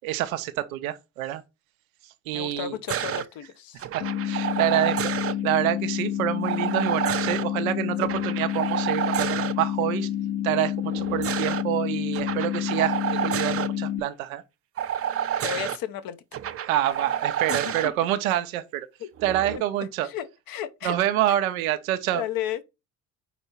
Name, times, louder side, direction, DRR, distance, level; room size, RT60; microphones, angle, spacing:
voice 1, 0.0-1.4 2.3-2.8 3.9-10.1 10.4-14.4 16.6-18.9 19.2-20.1 20.8-22.2, right 13 dB, 85° right, 0.7 m, -27 dB
voice 2, 2.3-3.9 15.4-16.4 17.5-17.9 19.0-19.1 19.5-19.6 20.0-21.0 21.3-21.4 22.1-22.6, left 10 dB, 55° left, 0.9 m, -33 dB
sound 1, 2.9-3.2 3.8-5.3 6.4-7.4 8.0-9.5 10.8-11.6 12.1-13.7 14.8-15.8 16.3-17.9 19.2-19.6, right 9 dB, 35° right, 0.5 m, -29 dB
sound 2, 4.0-14.0, left 11 dB, 75° left, 1.4 m, -29 dB
4.4 x 4.1 x 5.6 m
hypercardioid pair, 60°, 41 cm